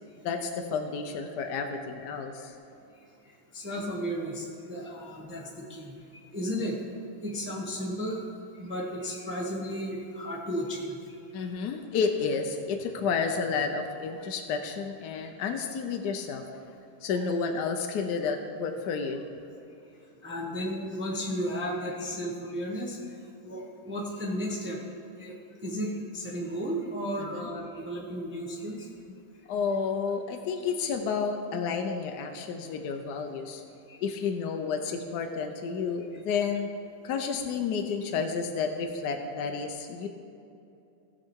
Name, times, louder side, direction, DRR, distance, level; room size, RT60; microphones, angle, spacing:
voice 1, 0.2-2.5 11.3-16.4 17.0-19.2 27.2-27.5 29.5-33.6 34.0-36.7 37.0-40.1, left 5 dB, 70° left, 4 dB, 1.0 m, -31 dB
voice 2, 3.5-5.9 6.3-6.8 7.2-8.3 8.6-11.2 20.2-23.0 23.4-24.8 25.2-25.4 25.6-28.9 33.9-34.0, equal, 10° right, -2 dB, 0.5 m, -34 dB
15.5 x 5.9 x 4.5 m, 2.7 s
omnidirectional pair, 2.4 m